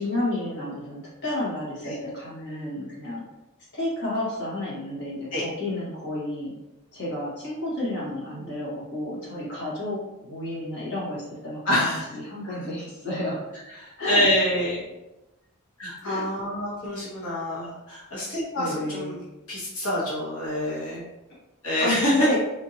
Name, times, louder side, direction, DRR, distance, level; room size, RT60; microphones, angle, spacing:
voice 1, 0.0-3.2 3.7-6.5 6.9-10.0 10.3-13.4 14.0-14.2 16.0-16.3 18.6-19.1 21.8-22.4, left 1 dB, 55° left, -7 dB, 1.4 m, -31 dB
voice 2, 7.9-8.5 11.7-12.0 12.4-12.6 13.8-14.8 15.8-19.2 19.5-21.0 21.6-22.4, left 1 dB, 85° left, -7 dB, 1.0 m, -26 dB
3.5 x 2.7 x 2.7 m, 0.98 s
head